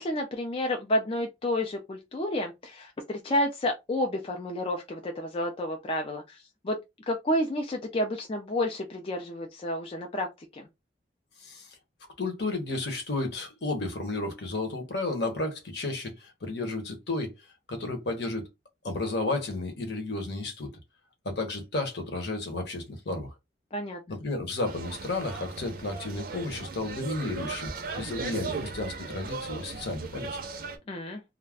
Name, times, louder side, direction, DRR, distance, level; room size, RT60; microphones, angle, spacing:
voice 1, 0.0-6.8 7.1-10.3 10.5-10.7 23.7-24.0 30.9-31.2, left 1 dB, 30° left, 0.4 m, -30 dB
voice 2, 11.4-11.8 12.2-17.3 17.7-18.5 18.8-20.7 21.2-23.3 24.1-30.4, left 2 dB, 65° left, 0.9 m, -32 dB
sound 1, 24.6-30.8, right 4 dB, 55° right, 0.5 m, -37 dB
2.4 x 2.1 x 3.4 m
head